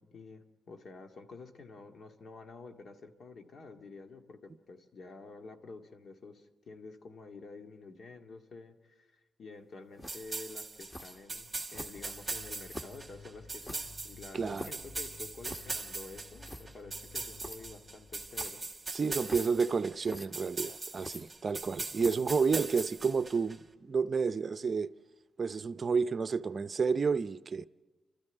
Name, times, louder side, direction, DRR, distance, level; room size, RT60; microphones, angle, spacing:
voice 1, 0.0-4.4 4.7-18.6, left 3 dB, 60° left, 2.0 m, -49 dB
sound 1, 10.0-10.4 10.9-11.2 11.7-12.2 12.7-13.0 13.6-14.9 15.4-15.8 16.1-16.2 16.4-16.7 17.4-17.6 18.3-18.7 19.2-19.7 20.0-20.3 20.9-21.6 22.0-22.3, left 1 dB, 15° left, 1.6 m, -45 dB
sound 2, 10.1-23.6, right 3 dB, 25° right, 1.7 m, -41 dB
sound 3, 11.9-18.5, left 3 dB, 35° left, 1.0 m, -55 dB
voice 2, 14.3-14.7 18.9-24.9 25.4-27.7, right 5 dB, 45° right, 0.6 m, -30 dB
28.5 x 13.0 x 8.1 m
cardioid pair, 75°, 0 cm